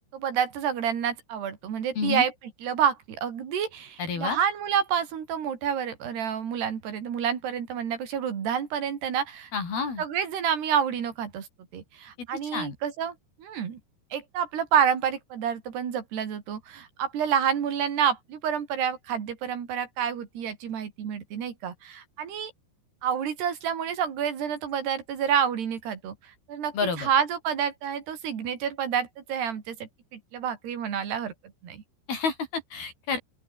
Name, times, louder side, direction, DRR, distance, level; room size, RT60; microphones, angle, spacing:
voice 1, 0.1-2.3 2.6-9.5 10.0-11.5 11.7-13.8 14.1-22.5 23.0-31.3 31.6-31.8, right 8 dB, 80° right, 5.4 m, -28 dB
voice 2, 2.0-2.3 4.0-4.4 9.5-10.0 12.5-12.7 26.7-27.1 32.1-33.2, left 5 dB, 70° left, 7.7 m, -29 dB
open air
omnidirectional pair, 4.6 m